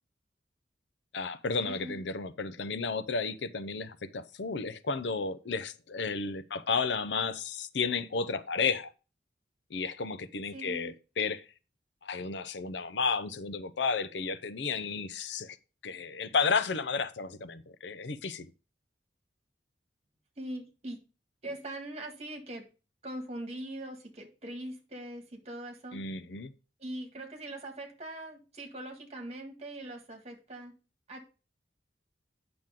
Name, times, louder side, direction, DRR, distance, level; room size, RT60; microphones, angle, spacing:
voice 1, 1.1-8.9 9.7-11.4 12.0-15.6 15.8-18.5 25.9-26.5, left 5 dB, 80° left, 0.6 m, -32 dB
voice 2, 1.6-2.0 10.5-10.9 20.4-21.0 21.4-22.7 23.0-26.0 26.8-30.7 31.1-31.2, right 1 dB, 40° right, 1.9 m, -41 dB
8.9 x 6.1 x 3.7 m
head